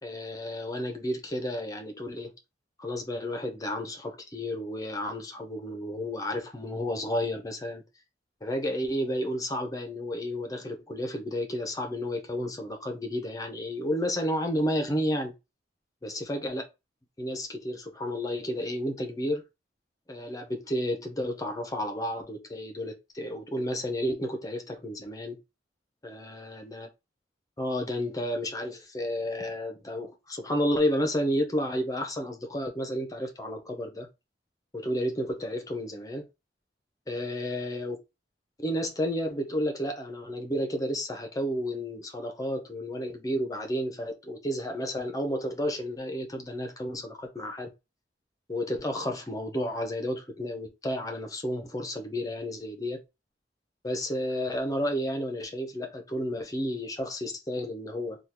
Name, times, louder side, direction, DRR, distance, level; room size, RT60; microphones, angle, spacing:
voice 1, 0.0-2.3 2.8-7.8 8.4-15.3 16.0-16.6 17.2-19.4 20.1-25.4 26.0-26.9 27.6-34.1 34.7-36.3 37.1-38.0 38.6-47.7 48.5-53.0 53.8-58.2, equal, 20° left, 0.7 m, -31 dB
3.5 x 2.3 x 2.9 m
head